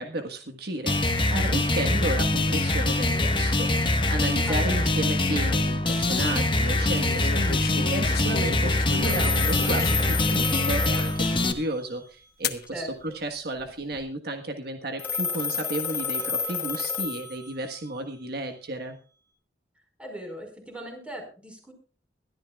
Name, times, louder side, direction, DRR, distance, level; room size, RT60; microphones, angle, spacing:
voice 1, 0.0-19.0, right 1 dB, 65° right, 5 dB, 1.5 m, -33 dB
sound 1, 0.9-11.5, left 2 dB, 30° left, 1.3 m, -24 dB
voice 2, 4.5-4.8 12.7-13.2 20.0-21.7, equal, 5° right, 3 dB, 4.9 m, -39 dB
sound 2, 5.3-5.7 7.0-10.3 10.9-11.0 12.4-12.7 13.5-14.0, left 5 dB, 60° left, 1.1 m, -35 dB
Telephone, 9.0-11.9 15.0-17.8, left 5 dB, 10° left, 5.3 m, -31 dB
21.5 x 13.0 x 2.4 m, 0.38 s
head